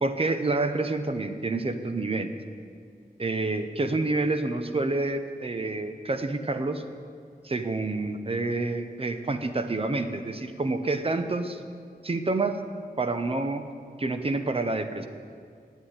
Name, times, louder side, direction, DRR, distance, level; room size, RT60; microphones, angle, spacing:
voice 1, 0.0-2.3 3.2-6.8 7.4-11.6 12.0-12.6 13.0-13.6 14.0-15.1, right 2 dB, 35° right, 8 dB, 0.8 m, -28 dB
9.7 x 8.2 x 8.7 m, 2.2 s
wide cardioid pair, 100°, 16 cm